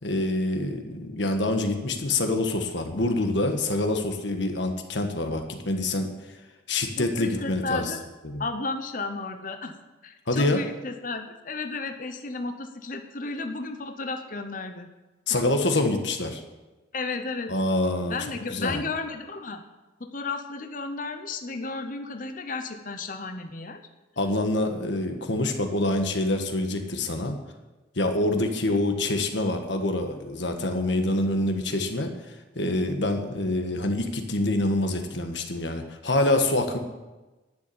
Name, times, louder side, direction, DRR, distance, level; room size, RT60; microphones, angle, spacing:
voice 1, 0.0-6.1 6.7-7.9 8.2-8.4 10.3-10.6 15.3-16.4 17.5-18.2 18.5-18.8 24.2-27.4 27.9-36.8, left 2 dB, 70° left, 5 dB, 1.5 m, -26 dB
voice 2, 7.0-8.0 8.4-9.7 10.0-14.9 15.3-15.4 16.9-17.5 18.1-19.6 20.0-23.8, left 3 dB, 45° left, 6 dB, 0.8 m, -33 dB
11.0 x 6.9 x 8.7 m, 1.1 s
head